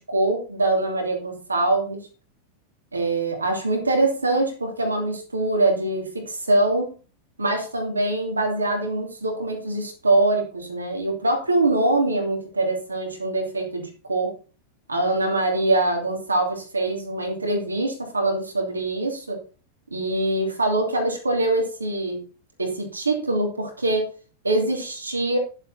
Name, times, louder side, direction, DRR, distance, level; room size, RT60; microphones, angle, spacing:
voice 1, 0.0-2.0 2.9-7.0 7.4-14.3 14.9-19.4 19.9-22.2 22.6-24.1 24.4-25.4, right 2 dB, 80° right, 2 dB, 2.8 m, -23 dB
10.5 x 7.5 x 4.2 m, 0.36 s
figure-of-eight pair, 90°, 0 cm